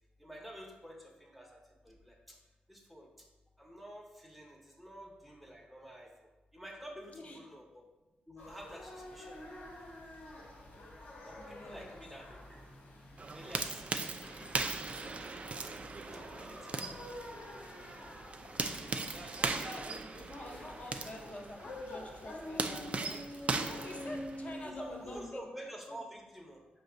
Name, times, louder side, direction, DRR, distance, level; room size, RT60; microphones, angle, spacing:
voice 1, 0.2-2.4 2.7-3.3 3.6-7.8 8.3-9.6 11.2-12.6 13.2-14.8 16.1-16.9 17.2-17.5 18.0-18.1 18.5-19.8 23.7-23.9 24.6-26.8, right 1 dB, ahead, 0 dB, 0.8 m, -50 dB
sound 1, 8.4-25.3, left 1 dB, 75° left, 1.1 m, -48 dB
voice 2, 11.4-12.0 16.0-16.2 16.8-17.1 19.3-25.4 25.9-26.0, left 1 dB, 45° left, 1 dB, 0.7 m, -48 dB
sound 2, 13.2-24.6, right 3 dB, 40° right, 0.3 m, -39 dB
5.0 x 2.3 x 3.8 m, 1.1 s
cardioid pair, 80°, 3 cm